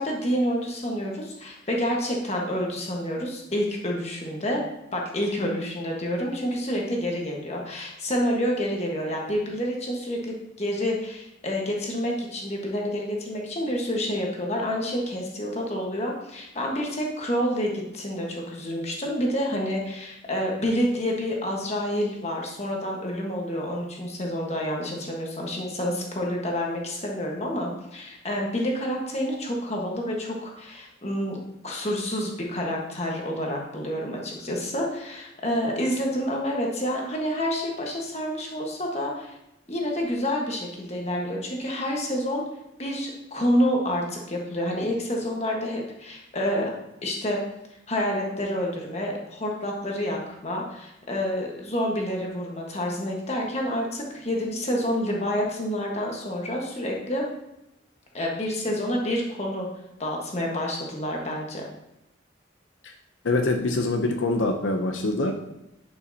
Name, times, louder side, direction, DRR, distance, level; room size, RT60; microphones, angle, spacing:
voice 1, 0.0-4.6 4.9-31.4 31.6-39.3 39.7-42.4 42.8-46.7 47.0-47.4 47.9-57.3 58.1-59.7 60.0-61.7, equal, 35° left, -1 dB, 1.4 m, -28 dB
voice 2, 63.2-65.3, left 2 dB, 75° left, 4 dB, 0.6 m, -24 dB
11.0 x 5.6 x 2.8 m, 0.89 s
head